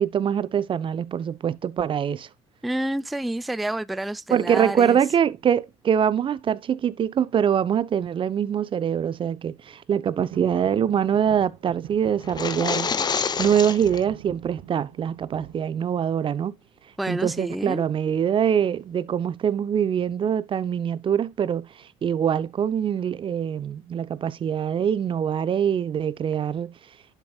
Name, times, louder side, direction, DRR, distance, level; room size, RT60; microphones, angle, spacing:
voice 1, 0.0-2.3 4.3-16.5 17.1-21.7 22.0-26.7, right 8 dB, 35° right, 0.6 m, -24 dB
voice 2, 2.6-5.0 17.0-17.8, right 1 dB, ahead, 0.3 m, -28 dB
sound 1, 10.3-16.5 16.9-17.5 18.8-19.2 19.5-19.6 19.8-20.1 21.0-21.9 22.4-22.5, right 10 dB, 65° right, 1.5 m, -45 dB
sound 2, 12.2-14.0, left 6 dB, 25° left, 0.8 m, -27 dB
11.5 x 5.2 x 2.3 m
supercardioid pair, 95°, 15 cm